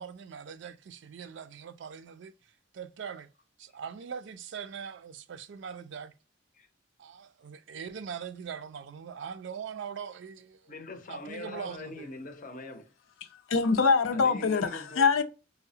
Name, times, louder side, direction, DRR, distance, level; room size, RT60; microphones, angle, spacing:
voice 1, 0.0-2.3 2.7-3.3 3.6-6.1 7.0-10.7 11.1-12.1, right 7 dB, 60° right, 0.3 m, -41 dB
voice 2, 10.7-12.9 14.1-15.1, left 2 dB, 40° left, 0.6 m, -42 dB
voice 3, 13.3-15.2, left 5 dB, 85° left, 0.5 m, -24 dB
5.5 x 2.0 x 2.6 m
head